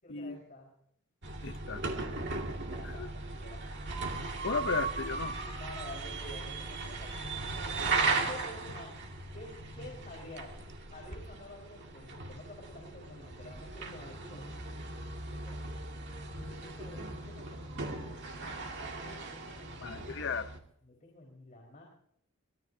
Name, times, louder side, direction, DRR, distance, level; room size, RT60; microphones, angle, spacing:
voice 1, 0.0-0.7 2.5-3.6 5.3-8.9 9.3-10.6 10.9-14.5 15.3-15.7 16.3-18.2 19.0-20.1 20.8-21.8, left 1 dB, 35° left, 4.6 m, -50 dB
sound 1, 1.2-20.6, right 3 dB, 55° right, 2.1 m, -37 dB
voice 2, 1.4-1.8 3.0-3.1 4.4-5.3 19.8-20.5, left 5 dB, 55° left, 0.8 m, -34 dB
23.5 x 18.0 x 2.8 m
head